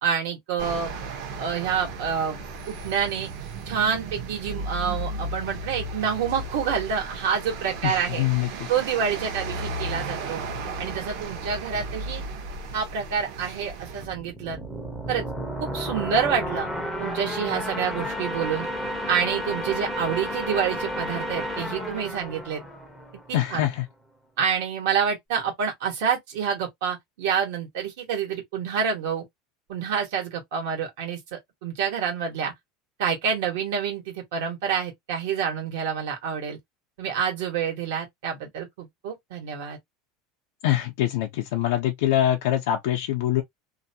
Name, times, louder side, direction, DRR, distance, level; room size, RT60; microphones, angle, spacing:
voice 1, 0.0-0.9 1.4-2.4 2.7-3.3 3.7-8.2 8.7-10.4 10.8-12.2 12.7-14.6 15.1-15.2 15.6-16.7 17.0-18.7 19.1-22.6 23.3-23.7 24.4-29.2 29.7-32.5 33.0-36.6 37.0-39.8, right 7 dB, 75° right, 1.2 m, -27 dB
sound 1, 0.6-14.0, right 2 dB, 55° right, 0.8 m, -35 dB
voice 2, 7.8-8.5 23.3-23.8 40.6-43.4, left 13 dB, 70° left, 0.5 m, -24 dB
sound 2, 14.0-23.5, equal, ahead, 0.6 m, -32 dB
2.6 x 2.2 x 2.7 m
supercardioid pair, 175°, 0 cm